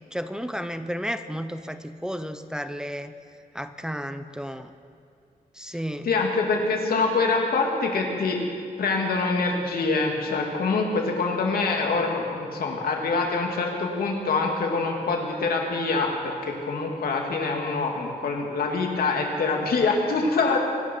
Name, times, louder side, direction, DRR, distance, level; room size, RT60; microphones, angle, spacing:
voice 1, 0.1-3.1 3.5-4.7 5.5-6.1, equal, 5° right, 10 dB, 0.6 m, -32 dB
voice 2, 6.0-8.4 8.8-20.6, left 3 dB, 85° left, 1 dB, 2.5 m, -25 dB
24.0 x 12.5 x 4.7 m, 2.5 s
wide cardioid pair, 140°, 15 cm